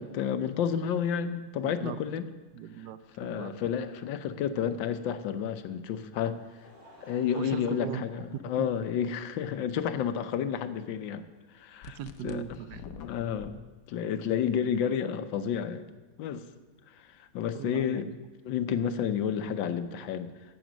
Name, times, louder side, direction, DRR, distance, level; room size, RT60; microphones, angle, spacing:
voice 1, 0.0-2.3 3.2-6.4 7.0-11.2 11.5-12.0 12.2-12.4 13.0-15.8 16.2-16.5 17.0-18.1 18.4-20.3, left 8 dB, 85° left, 10 dB, 1.5 m, -31 dB
voice 2, 1.6-2.0 2.5-3.5 7.3-8.2 8.6-8.7 11.9-12.9 17.5-18.0, right 9 dB, 75° right, 12 dB, 1.1 m, -39 dB
Laughter, 6.1-9.1 9.9-10.0 11.5-11.6, equal, 30° right, 3.6 m, -56 dB
sound 1, 11.8-13.5, left 7 dB, 60° left, 1.0 m, -45 dB
15.5 x 7.2 x 6.2 m, 1.2 s
omnidirectional pair, 2.0 m